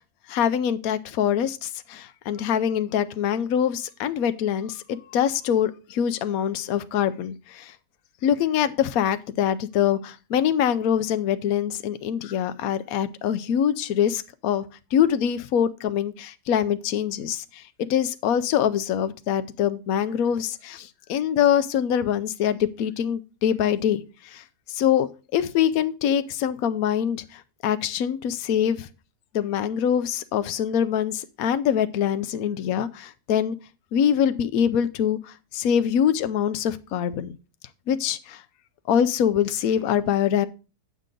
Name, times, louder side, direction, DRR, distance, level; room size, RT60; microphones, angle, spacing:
voice 1, 0.3-7.7 8.2-14.6 14.9-17.6 17.9-28.9 29.3-33.6 33.9-37.4 37.9-38.4 38.9-40.5, left 9 dB, 65° left, 1.1 m, -24 dB
9.3 x 6.8 x 3.8 m
omnidirectional pair, 1.8 m